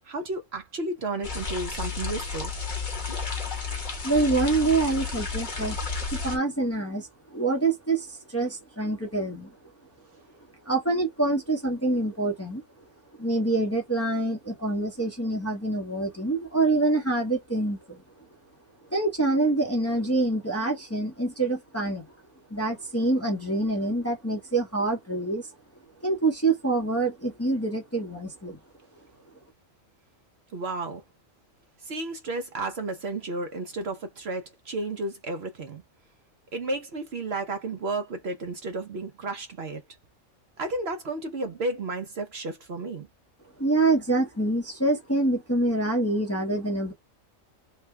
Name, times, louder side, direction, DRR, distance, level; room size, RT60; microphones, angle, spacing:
voice 1, 0.0-2.5 30.5-31.0 31.8-35.8 36.5-39.8 40.6-43.1, right 2 dB, 55° right, 1.0 m, -32 dB
sound 1, 1.2-6.4, left 4 dB, 40° left, 1.1 m, -32 dB
voice 2, 4.0-9.5 10.7-12.6 13.2-18.0 18.9-22.0 22.5-25.5 26.0-28.6 43.6-46.9, right 2 dB, 15° left, 0.8 m, -26 dB
3.2 x 2.2 x 3.3 m
omnidirectional pair, 1.4 m